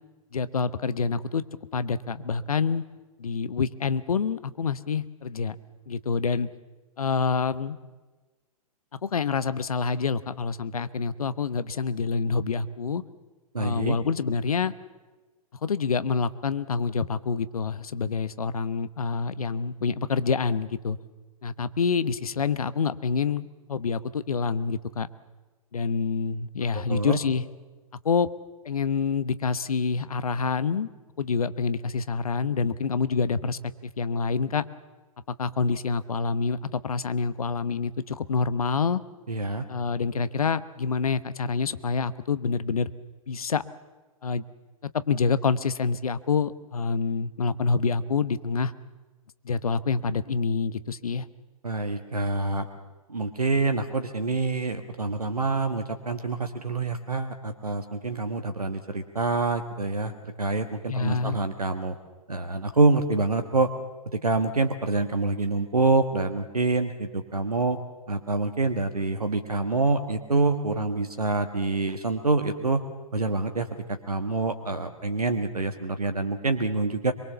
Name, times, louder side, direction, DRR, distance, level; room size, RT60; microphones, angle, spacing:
voice 1, 0.3-1.4 1.7-2.8 3.2-5.6 5.9-6.5 7.0-7.8 9.0-13.0 13.6-14.7 15.6-21.0 21.4-25.1 25.7-27.4 28.0-28.3 28.6-30.9 31.2-34.6 35.3-39.0 39.7-42.9 43.3-43.6 44.2-44.4 44.9-48.7 49.4-51.2 60.9-61.4, left 5 dB, 70° left, 15 dB, 1.1 m, -27 dB
voice 2, 13.5-14.0 26.7-27.2 39.3-39.7 51.6-52.7 53.1-62.0 62.3-63.7 64.0-67.8 68.1-72.8 73.1-77.1, right 3 dB, 85° right, 8 dB, 1.5 m, -26 dB
23.5 x 22.5 x 7.0 m, 1.2 s
figure-of-eight pair, 110°, 19 cm